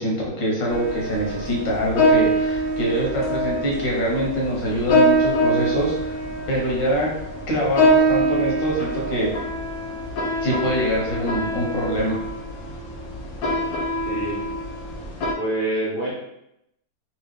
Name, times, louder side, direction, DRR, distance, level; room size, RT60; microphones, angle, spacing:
voice 1, 0.0-6.1 6.5-7.2 7.5-9.3 10.4-12.2, equal, 90° left, -3 dB, 1.8 m, -24 dB
sound 1, 0.7-15.3, equal, 60° left, 1.1 m, -24 dB
voice 2, 14.1-14.4 15.4-16.1, right 1 dB, 45° right, -9 dB, 0.6 m, -26 dB
3.7 x 2.8 x 3.3 m, 0.82 s
omnidirectional pair, 1.9 m